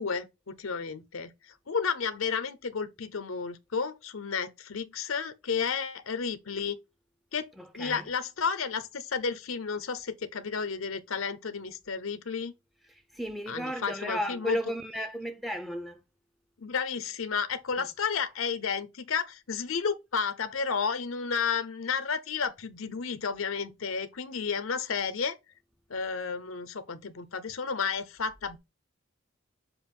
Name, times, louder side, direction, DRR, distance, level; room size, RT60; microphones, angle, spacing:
voice 1, 0.0-6.8 7.3-7.5 7.7-12.5 13.5-14.6 16.6-25.4 25.9-28.6, left 5 dB, 80° left, 0.7 m, -32 dB
voice 2, 7.6-8.1 12.9-16.0 17.8-17.9, equal, ahead, 0.5 m, -35 dB
7.0 x 2.6 x 5.3 m
head